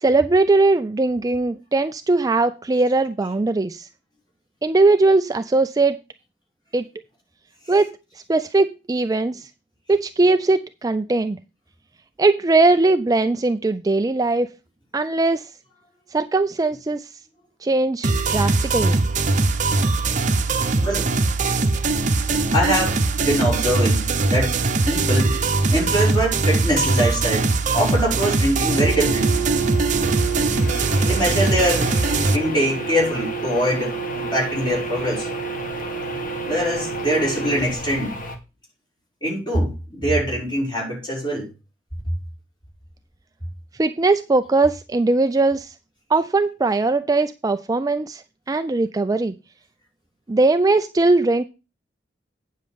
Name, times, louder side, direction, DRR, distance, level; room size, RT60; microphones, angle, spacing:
voice 1, 0.0-3.9 4.6-6.0 6.7-6.9 7.7-7.9 8.3-9.5 9.9-11.4 12.2-14.5 14.9-15.5 16.1-17.1 17.6-19.0 43.8-45.7 46.1-49.3 50.3-51.4, right 3 dB, 20° right, 0.4 m, -20 dB
sound 1, 18.0-32.4, right 3 dB, 40° right, 0.9 m, -21 dB
voice 2, 20.8-21.1 22.5-25.4 25.7-29.4 31.0-32.0 32.3-35.3 36.4-38.2 39.2-41.5, equal, 25° left, 5.6 m, -23 dB
sound 2, 28.7-38.4, right 4 dB, 50° left, 1.8 m, -29 dB
9.6 x 6.4 x 5.2 m
head